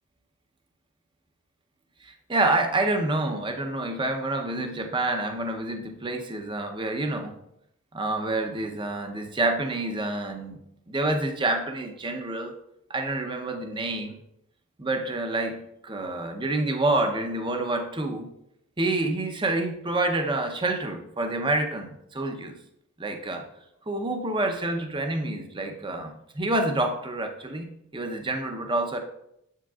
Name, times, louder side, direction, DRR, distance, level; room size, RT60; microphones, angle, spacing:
voice 1, 2.0-7.4 7.9-10.6 10.9-12.5 12.9-14.2 14.8-18.3 18.8-22.5 23.0-23.5 23.9-29.0, right 2 dB, 20° right, 5 dB, 0.6 m, -28 dB
7.9 x 7.5 x 2.4 m, 0.78 s
head